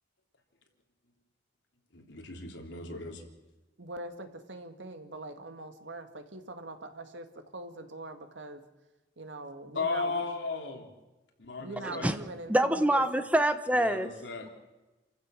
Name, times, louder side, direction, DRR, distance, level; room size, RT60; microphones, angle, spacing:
voice 1, 1.9-3.2 9.7-10.9 11.4-12.1 13.7-14.5, left 3 dB, 80° left, 2 dB, 3.4 m, -35 dB
voice 2, 3.8-7.3 7.5-8.6 9.2-10.2 11.6-13.0, right 2 dB, 80° right, 7 dB, 2.0 m, -42 dB
voice 3, 11.8-12.2 12.5-14.1 14.4-14.5, right 1 dB, 10° right, 10 dB, 1.0 m, -26 dB
28.5 x 15.0 x 6.5 m, 1.1 s
head